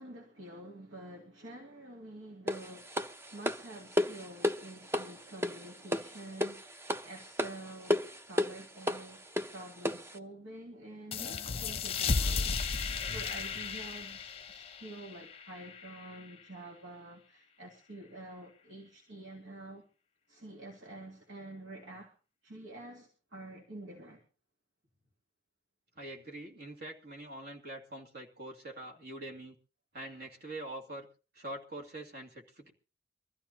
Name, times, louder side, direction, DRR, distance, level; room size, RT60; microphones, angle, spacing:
voice 1, 0.0-3.0 3.3-8.0 8.3-9.3 9.5-19.8 20.3-22.1 22.4-24.2, right 1 dB, 85° right, 0 dB, 2.5 m, -48 dB
sound 1, 2.5-10.2, left 1 dB, 15° right, 0.6 m, -34 dB
sound 2, 11.1-16.3, left 5 dB, 30° left, 0.7 m, -35 dB
voice 2, 26.0-29.6 29.9-31.1 31.3-32.7, right 1 dB, 55° right, 1 dB, 2.5 m, -44 dB
24.0 x 14.0 x 2.9 m, 0.34 s
head